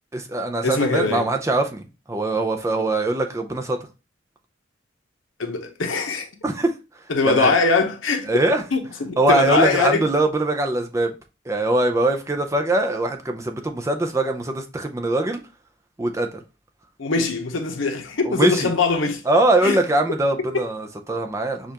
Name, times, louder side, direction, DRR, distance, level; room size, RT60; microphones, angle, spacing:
voice 1, 0.1-3.8 6.4-6.7 7.2-7.6 8.3-8.6 9.2-11.1 11.5-15.4 16.0-16.4 18.2-18.7 19.3-21.7, right 2 dB, 15° right, 0.4 m, -22 dB
voice 2, 0.6-1.3 5.4-6.3 7.1-8.3 8.7-10.0 17.0-19.2 19.6-19.8 20.5-20.6, left 4 dB, 85° left, 0.9 m, -22 dB
6.5 x 2.4 x 2.8 m
head